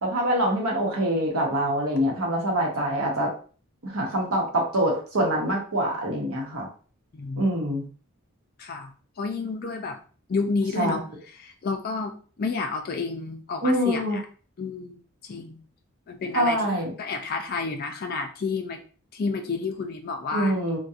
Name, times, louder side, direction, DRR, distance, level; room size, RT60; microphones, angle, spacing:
voice 1, 0.0-3.3 3.8-6.7 7.4-7.9 10.8-11.0 13.6-14.2 16.3-16.9 20.3-20.8, right 1 dB, 80° right, -1 dB, 0.9 m, -25 dB
voice 2, 7.1-7.5 8.6-8.9 9.2-10.0 10.3-11.0 11.4-14.2 14.6-15.0 15.3-15.6 16.1-18.8 19.1-20.6, left 4 dB, 45° left, 5 dB, 0.3 m, -30 dB
2.7 x 2.2 x 2.4 m, 0.40 s
head